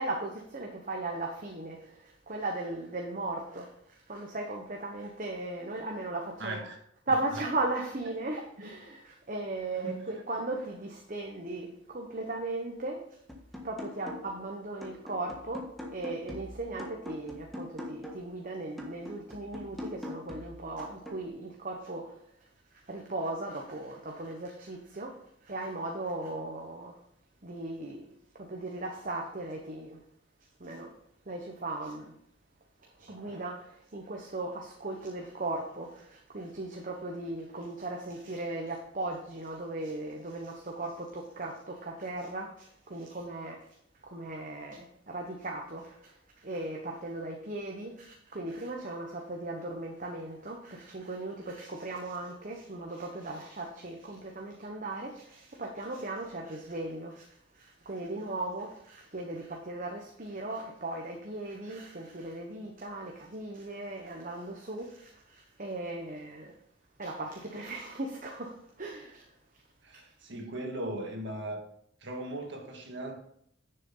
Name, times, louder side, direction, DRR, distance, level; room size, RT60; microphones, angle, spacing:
voice 1, 0.0-6.6 7.1-13.1 13.6-22.2 22.7-27.0 27.4-30.0 30.6-30.9 31.3-32.1 32.8-43.6 44.0-66.5 67.0-69.3, right 2 dB, 45° right, 1.2 m, -37 dB
voice 2, 6.4-6.8 9.8-10.2 69.8-71.6 72.0-73.2, right 1 dB, 65° right, 1.9 m, -38 dB
sound 1, 13.3-14.5 14.8-18.3 18.8-21.3, left 1 dB, ahead, 1.4 m, -43 dB
10.5 x 6.8 x 4.0 m
head